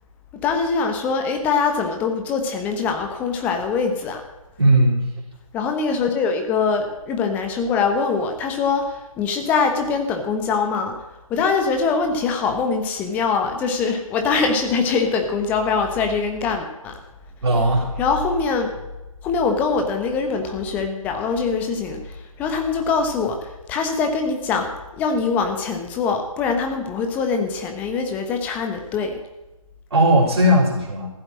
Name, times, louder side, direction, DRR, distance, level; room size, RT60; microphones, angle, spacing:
voice 1, 0.4-4.2 5.5-10.9 11.3-17.0 18.0-18.8 19.2-29.2, left 5 dB, 10° left, 5 dB, 1.1 m, -23 dB
voice 2, 4.6-5.0 17.4-17.9 29.9-31.1, right 1 dB, 50° right, -7 dB, 4.3 m, -17 dB
15.0 x 7.9 x 8.8 m, 1.0 s
figure-of-eight pair, 150°, 18 cm